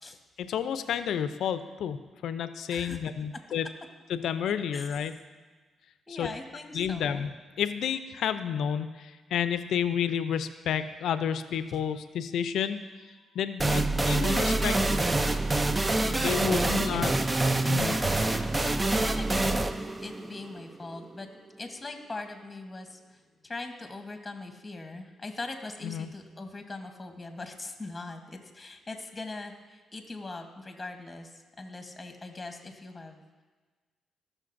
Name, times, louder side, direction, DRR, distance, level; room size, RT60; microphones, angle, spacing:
voice 1, 0.4-3.7 4.1-5.1 6.1-6.3 6.7-7.3 7.6-12.8 13.3-15.0 16.1-17.1 17.7-18.0 25.8-26.1, left 8 dB, 75° left, 11 dB, 0.4 m, -30 dB
voice 2, 6.1-7.3 16.6-17.0 18.9-19.7 20.0-21.3 21.6-33.4, left 2 dB, 20° left, 5 dB, 1.1 m, -41 dB
sound 1, 13.6-21.1, right 2 dB, 20° right, 0.4 m, -26 dB
14.5 x 6.3 x 2.6 m, 1.3 s
cardioid pair, 70°, 0 cm